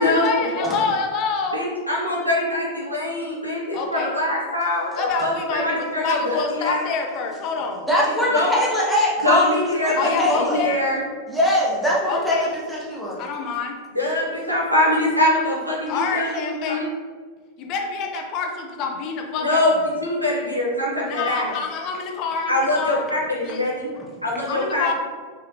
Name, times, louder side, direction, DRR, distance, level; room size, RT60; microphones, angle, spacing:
voice 1, 0.0-1.6 3.7-4.2 4.9-7.9 9.9-10.8 12.1-12.5 13.0-13.8 15.9-16.8 17.6-19.7 21.0-23.1 23.4-23.6 23.9-24.1 24.5-24.9, left 4 dB, 40° left, 2 dB, 0.4 m, -27 dB
voice 2, 1.5-6.3 6.6-6.8 8.0-8.5 9.2-11.0 13.9-16.3 16.7-16.9 19.4-19.7 20.0-21.5 22.5-23.9 24.2-24.9, left 1 dB, 90° right, -3 dB, 0.8 m, -23 dB
voice 3, 7.9-10.6 11.3-13.2 21.1-21.2 24.0-24.1, left 1 dB, ahead, -6 dB, 0.9 m, -22 dB
4.1 x 2.4 x 2.7 m, 1.5 s
figure-of-eight pair, 90°, 0 cm